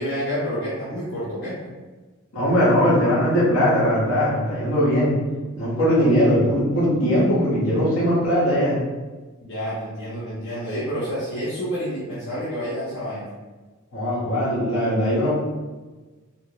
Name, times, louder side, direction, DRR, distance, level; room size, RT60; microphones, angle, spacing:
voice 1, 0.0-1.6 9.4-13.3, equal, 60° left, -9 dB, 0.8 m, -29 dB
voice 2, 2.3-5.1 5.5-8.8 13.9-15.3, equal, 80° left, -7 dB, 1.4 m, -20 dB
4.2 x 2.1 x 3.0 m, 1.3 s
head